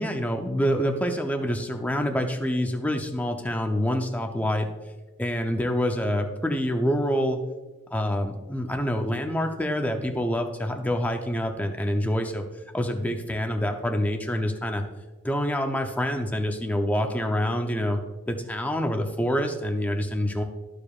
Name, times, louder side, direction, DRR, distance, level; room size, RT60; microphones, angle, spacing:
voice 1, 0.0-4.7 5.2-7.4 7.9-12.5 12.7-14.8 15.2-18.0 18.3-20.4, equal, 5° left, 4 dB, 0.6 m, -26 dB
13.5 x 4.9 x 2.4 m, 1.2 s
head